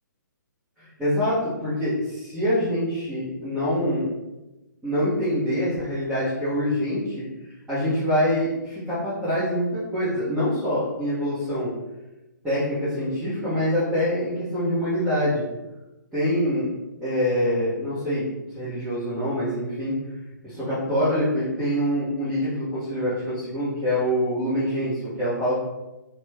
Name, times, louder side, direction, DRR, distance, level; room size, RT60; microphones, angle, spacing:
voice 1, 0.8-4.0 4.8-7.2 7.7-11.7 12.4-15.4 16.1-16.7 17.0-18.2 18.6-19.9 20.4-25.6, equal, 10° right, -14 dB, 1.0 m, -25 dB
2.9 x 2.2 x 3.4 m, 1.0 s
figure-of-eight pair, 130°, 11 cm